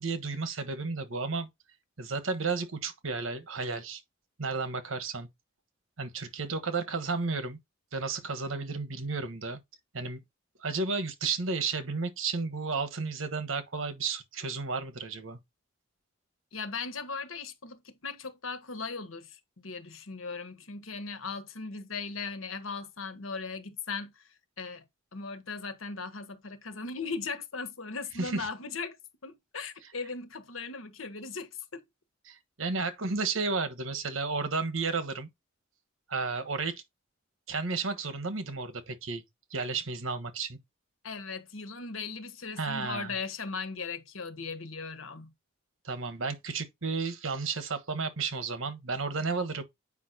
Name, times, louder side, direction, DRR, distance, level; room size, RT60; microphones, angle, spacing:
voice 1, 0.0-1.5 2.0-4.0 4.4-5.3 6.0-7.6 7.9-9.6 9.9-10.2 10.6-15.4 28.2-28.5 32.3-35.3 36.1-36.8 37.5-39.2 39.5-40.6 42.6-43.1 45.8-49.6, right 4 dB, 75° right, 1.3 m, -32 dB
voice 2, 16.5-24.3 24.6-24.9 25.1-29.0 29.2-31.8 41.0-45.3, left 4 dB, 80° left, 1.4 m, -38 dB
8.4 x 5.3 x 2.7 m
head